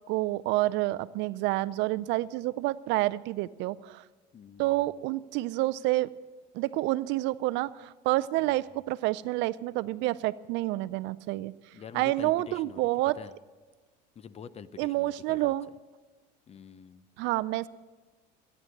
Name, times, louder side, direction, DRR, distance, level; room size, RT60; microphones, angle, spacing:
voice 1, 0.1-4.0 4.6-6.1 6.5-11.5 11.9-13.2 14.8-15.7 17.2-17.7, right 18 dB, 60° right, 18 dB, 0.4 m, -28 dB
voice 2, 4.3-5.0 8.4-8.6 11.7-12.9 13.1-13.3 14.1-15.5 16.5-17.0, left 7 dB, 30° left, 16 dB, 0.6 m, -46 dB
16.0 x 9.8 x 6.5 m, 1.3 s
supercardioid pair, 100°, 21 cm